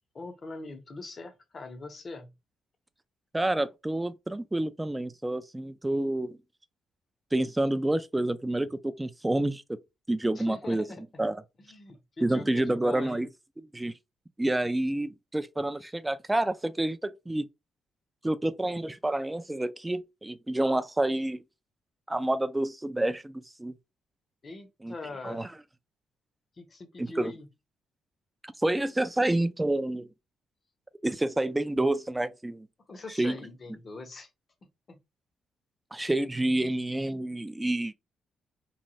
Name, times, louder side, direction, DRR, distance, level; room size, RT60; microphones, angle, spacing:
voice 1, 0.1-2.3 10.3-11.3 11.6-13.3 24.4-25.4 26.6-27.5 32.9-34.3 34.9-35.0, left 3 dB, 40° left, 0.7 m, -42 dB
voice 2, 3.3-6.4 7.3-9.8 10.1-10.8 11.2-11.4 12.2-13.3 13.7-13.9 14.4-17.5 18.2-21.4 22.1-23.7 24.8-24.9 25.2-25.5 27.0-27.3 28.4-30.1 31.0-32.7 33.2-33.4 35.9-37.9, right 1 dB, 10° right, 0.3 m, -28 dB
3.1 x 2.2 x 2.7 m
cardioid pair, 90°, 0 cm